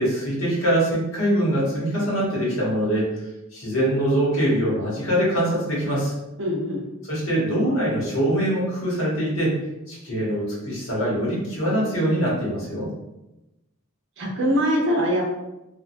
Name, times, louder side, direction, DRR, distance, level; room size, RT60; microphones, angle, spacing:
voice 1, 0.0-3.0 3.5-6.1 7.1-9.6 9.9-12.9, right 1 dB, 65° left, -5 dB, 1.1 m, -23 dB
voice 2, 6.4-6.8 14.2-15.2, equal, 60° right, -2 dB, 0.7 m, -22 dB
2.8 x 2.2 x 2.6 m, 0.96 s
head